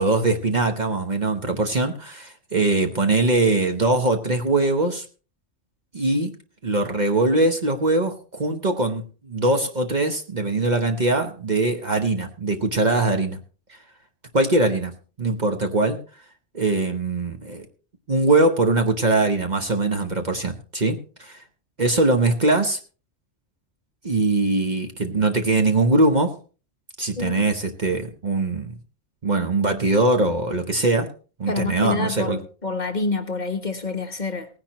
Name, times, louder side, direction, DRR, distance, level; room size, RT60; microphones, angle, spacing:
voice 1, 0.0-5.0 5.9-6.3 6.6-13.4 13.7-13.8 14.3-14.9 15.2-16.0 16.5-17.7 18.1-21.4 21.8-22.8 24.0-26.3 27.0-28.7 29.2-31.1 31.4-32.4, right 2 dB, 40° right, 5 dB, 1.1 m, -22 dB
voice 2, 27.1-27.5 31.5-34.5, left 3 dB, 40° left, 5 dB, 1.2 m, -27 dB
18.0 x 10.5 x 3.0 m, 0.36 s
omnidirectional pair, 1.3 m